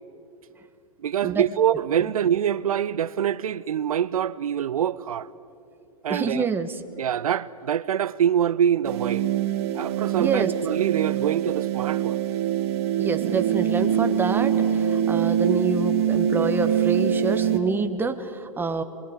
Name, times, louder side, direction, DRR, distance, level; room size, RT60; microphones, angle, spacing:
voice 1, 1.0-5.3 6.0-6.5 7.0-9.3 9.7-12.2, right 9 dB, 75° right, 0.6 m, -25 dB
voice 2, 6.1-6.7 10.2-10.5 13.0-18.8, right 5 dB, 10° right, 1.4 m, -27 dB
sound 1, 8.8-17.6, right 9 dB, 45° right, 2.4 m, -24 dB
25.0 x 22.5 x 8.1 m
hypercardioid pair, 120°, 19 cm